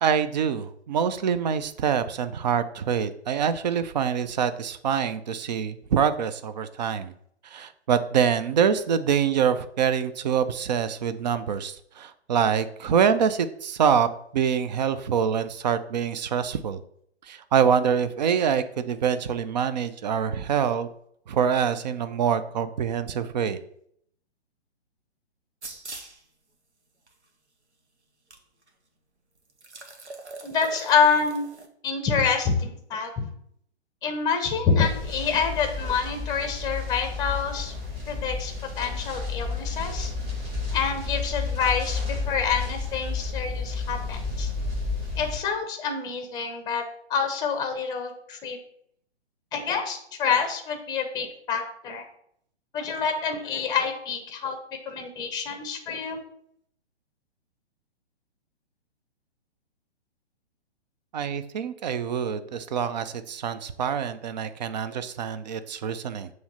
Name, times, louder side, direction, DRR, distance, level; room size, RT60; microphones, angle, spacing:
voice 1, 0.0-7.1 7.4-14.1 14.3-16.8 17.3-20.9 21.3-23.6 61.1-66.3, right 7 dB, 40° right, 12 dB, 0.5 m, -25 dB
sound 1, 25.6-26.2 27.1-27.2 28.3-28.4 28.7-28.8 29.5-31.7, right 3 dB, 85° right, 1.2 m, -42 dB
voice 2, 30.4-31.4 31.8-33.3 34.0-37.7 38.1-40.1 40.7-44.5 45.2-46.8 47.1-48.6 49.5-52.0 52.7-54.6 54.9-56.2, left 6 dB, 10° left, 6 dB, 0.8 m, -27 dB
sound 2, 34.8-45.4, left 4 dB, 20° right, 2.2 m, -31 dB
7.0 x 3.2 x 5.4 m, 0.68 s
figure-of-eight pair, 125°, 33 cm